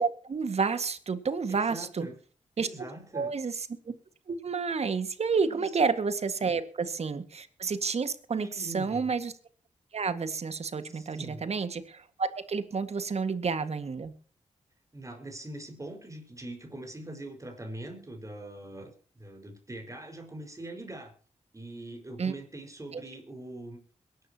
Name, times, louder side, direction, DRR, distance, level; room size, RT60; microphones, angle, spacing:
voice 1, 0.0-2.1 2.6-2.7 3.1-3.5 4.3-9.3 9.9-14.1 22.2-22.3 22.9-23.0, right 5 dB, 60° right, 11 dB, 1.9 m, -30 dB
voice 2, 1.5-2.2 2.6-3.3 5.4-5.7 6.5-6.6 8.4-9.1 10.9-11.5 14.9-21.1 21.5-23.8, right 1 dB, 25° right, 4 dB, 5.2 m, -42 dB
22.5 x 11.5 x 2.9 m, 0.43 s
cardioid pair, 60°, 12 cm